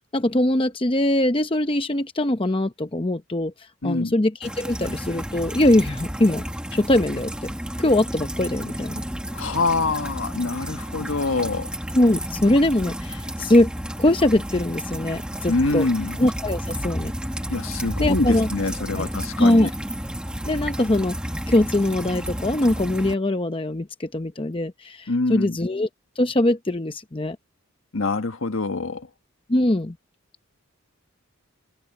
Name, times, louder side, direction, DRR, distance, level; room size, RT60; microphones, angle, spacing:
voice 1, 0.1-3.5 3.8-6.4 6.7-7.5 7.8-9.0 11.9-13.7 14.0-15.9 16.2-17.1 18.0-18.5 19.0-19.1 19.4-19.7 20.4-21.2 21.5-25.9 26.2-27.4 29.5-30.0, left 1 dB, 25° left, 0.8 m, -22 dB
voice 2, 3.8-4.1 9.3-11.7 15.5-16.2 17.5-19.7 25.1-25.6 27.9-29.1, left 3 dB, 65° left, 1.5 m, -25 dB
sound 1, 4.4-23.1, equal, 5° right, 1.4 m, -31 dB
head